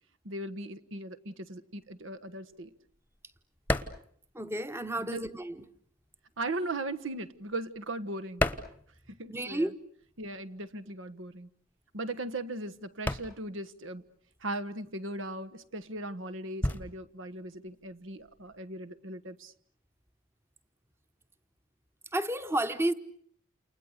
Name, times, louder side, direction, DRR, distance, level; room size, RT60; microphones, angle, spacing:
voice 1, 0.2-2.7 5.1-5.2 6.4-8.4 9.1-9.7 10.2-11.5 11.9-14.0 14.4-19.5, right 2 dB, 75° right, 1.4 m, -38 dB
sound 1, 1.8-5.2 5.5-9.6 9.9-18.6, left 1 dB, 10° left, 1.1 m, -37 dB
voice 2, 4.3-5.7 9.3-9.7 22.1-22.9, right 1 dB, 10° right, 1.1 m, -31 dB
29.5 x 29.0 x 6.6 m
head